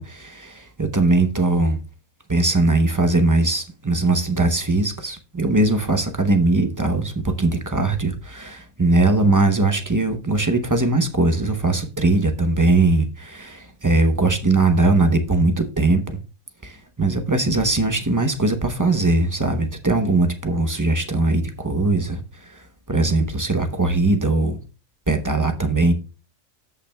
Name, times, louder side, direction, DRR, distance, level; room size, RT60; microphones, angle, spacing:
voice 1, 0.0-1.8 2.3-16.0 16.6-24.6 25.1-25.9, right 2 dB, 25° right, 0.4 m, -20 dB
13.5 x 5.7 x 2.2 m
omnidirectional pair, 1.4 m